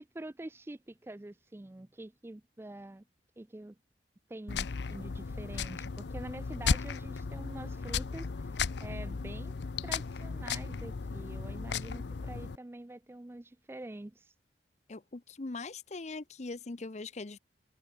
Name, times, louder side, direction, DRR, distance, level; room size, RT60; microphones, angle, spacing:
voice 1, 0.0-3.0 3.4-3.8 4.3-9.5 9.8-14.3, right 1 dB, 15° right, 0.4 m, -46 dB
sound 1, 4.5-12.6, left 5 dB, 75° left, 0.6 m, -35 dB
voice 2, 14.9-17.4, left 3 dB, 40° left, 0.7 m, -41 dB
head